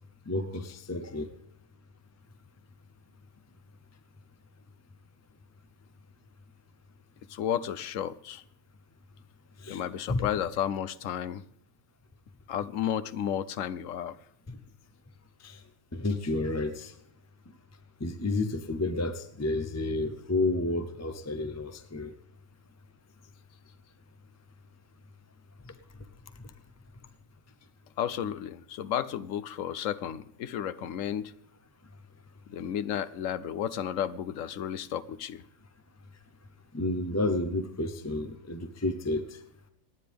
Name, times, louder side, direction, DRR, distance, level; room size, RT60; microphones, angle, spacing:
voice 1, 0.3-1.3 9.6-9.8 10.1-10.3 14.5-14.6 15.4-15.6 15.9-16.9 18.0-22.1 25.7-25.8 26.4-26.5 36.7-39.4, left 2 dB, 15° left, 0.5 m, -31 dB
voice 2, 7.3-8.4 9.7-11.4 12.5-14.2 28.0-31.3 32.5-35.4, left 10 dB, 70° left, 1.0 m, -32 dB
27.5 x 9.7 x 3.5 m
omnidirectional pair, 1.5 m